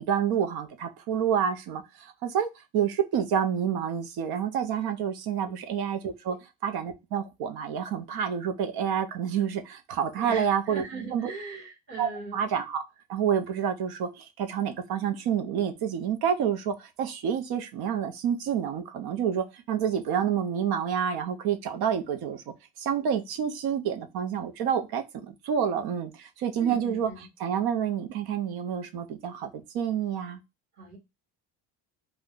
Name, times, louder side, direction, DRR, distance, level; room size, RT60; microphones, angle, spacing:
voice 1, 0.0-6.4 6.6-10.8 11.1-11.3 12.0-12.8 13.1-22.4 22.8-27.1 27.4-30.4, right 8 dB, 70° right, 0.7 m, -28 dB
voice 2, 10.2-12.5 26.6-27.3 30.7-31.0, right 4 dB, 30° right, 1.3 m, -39 dB
2.5 x 2.2 x 3.5 m
cardioid pair, 165°, 38 cm